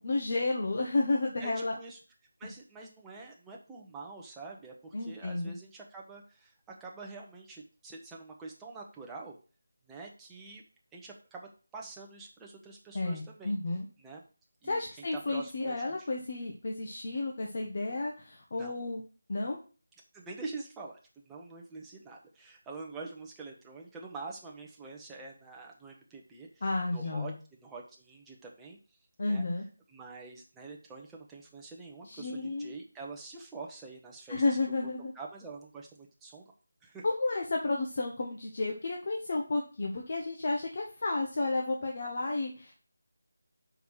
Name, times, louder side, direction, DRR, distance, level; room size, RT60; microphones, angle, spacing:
voice 1, 0.0-1.8 4.9-5.5 12.9-13.9 14.6-19.0 19.3-19.6 26.6-27.3 29.2-29.6 32.0-32.7 34.3-35.1 37.0-42.8, left 2 dB, 45° left, 0 dB, 1.3 m, -32 dB
voice 2, 1.4-2.0 2.4-6.5 6.8-9.4 9.9-10.6 10.9-13.5 14.0-14.2 14.6-16.1 18.6-18.7 20.1-29.0 29.3-29.4 29.9-34.8 35.1-36.5 36.8-37.0, right 3 dB, 5° right, -2 dB, 1.1 m, -46 dB
5.3 x 4.7 x 6.4 m, 0.36 s
figure-of-eight pair, 165°, 0 cm